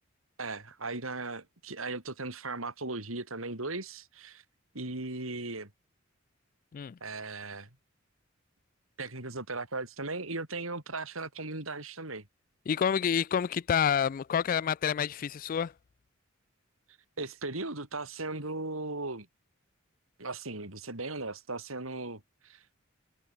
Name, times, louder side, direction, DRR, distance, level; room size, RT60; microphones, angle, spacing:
voice 1, 0.4-4.4 4.7-5.7 7.0-7.7 9.0-12.2 17.2-19.3 20.2-22.8, right 3 dB, 80° right, 4.6 m, -37 dB
voice 2, 12.7-15.7, left 8 dB, 45° left, 0.3 m, -28 dB
head